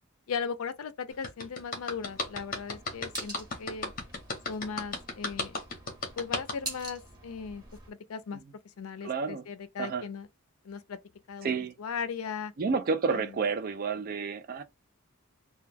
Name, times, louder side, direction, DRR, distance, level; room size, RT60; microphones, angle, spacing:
voice 1, 0.3-3.9 4.5-5.6 6.2-8.4 8.8-10.3 10.6-11.0 11.3-12.5 13.1-13.3, left 6 dB, 75° left, 0.4 m, -37 dB
sound 1, 1.2-6.5, left 3 dB, 40° left, 0.8 m, -34 dB
sound 2, 1.9-7.9, right 2 dB, 20° right, 1.1 m, -46 dB
voice 2, 9.0-9.5 9.8-10.1 11.4-11.7 12.6-14.6, right 5 dB, 40° right, 0.3 m, -30 dB
2.2 x 2.2 x 3.2 m
head